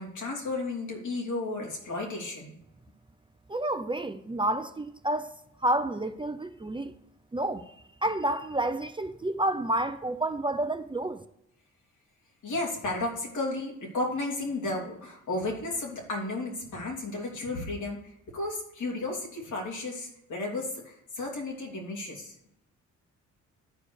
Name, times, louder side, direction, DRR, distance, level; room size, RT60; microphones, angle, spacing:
voice 1, 0.0-2.5 12.4-22.3, left 2 dB, 70° left, 3.2 m, -33 dB
voice 2, 3.5-6.9 7.3-7.7 8.0-11.2, right 1 dB, 15° right, 0.6 m, -30 dB
11.0 x 4.9 x 6.5 m
cardioid pair, 80°, 31 cm